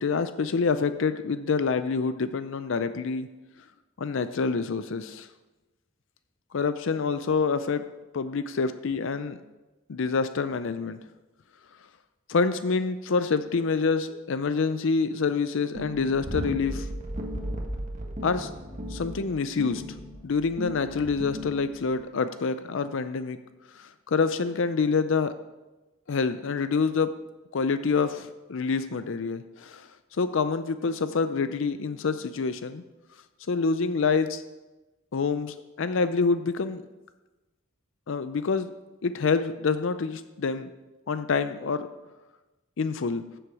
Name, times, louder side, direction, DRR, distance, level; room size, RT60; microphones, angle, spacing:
voice 1, 0.0-3.3 4.0-5.3 6.5-7.8 8.1-9.4 9.9-11.0 12.3-16.9 18.2-18.5 18.9-19.8 20.2-23.4 23.7-25.3 26.1-27.1 27.5-29.9 30.2-32.8 33.5-34.4 35.1-36.8 38.1-38.7 39.0-40.7 41.1-41.9 42.8-43.2, left 4 dB, 65° left, 11 dB, 0.5 m, -27 dB
sound 1, 15.8-21.9, equal, 40° right, 1.5 m, -36 dB
14.5 x 7.9 x 4.7 m, 1.1 s
head